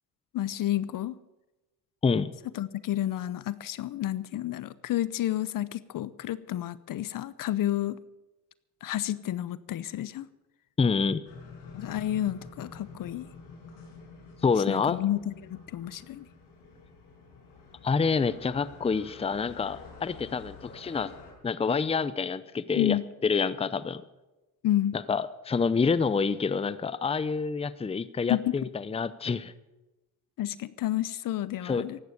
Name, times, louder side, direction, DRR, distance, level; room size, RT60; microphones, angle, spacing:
voice 1, 0.3-1.2 2.6-8.0 8.8-10.3 11.7-13.3 14.7-16.3 22.7-23.0 24.6-25.0 28.3-28.5 30.4-32.0, left 13 dB, 55° left, 17 dB, 0.8 m, -30 dB
voice 2, 10.8-11.2 14.4-15.0 17.8-21.1 21.4-24.0 24.9-29.5 31.6-31.8, left 5 dB, 15° left, 15 dB, 0.7 m, -27 dB
sound 1, 11.2-21.3, left 4 dB, 85° left, 6.3 m, -48 dB
15.5 x 11.5 x 6.7 m, 1.0 s
cardioid pair, 95°, 40 cm